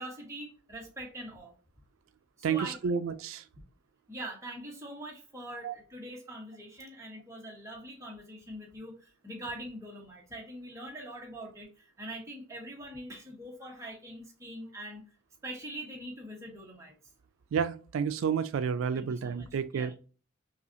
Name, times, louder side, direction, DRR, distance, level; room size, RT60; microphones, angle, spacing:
voice 1, 0.0-1.5 2.5-2.8 4.1-15.0 15.4-17.0 18.9-19.9, right 1 dB, 15° right, 1.2 m, -43 dB
voice 2, 2.4-3.4 5.6-5.8 17.5-19.9, right 6 dB, 85° right, 0.3 m, -30 dB
5.5 x 2.4 x 2.7 m
head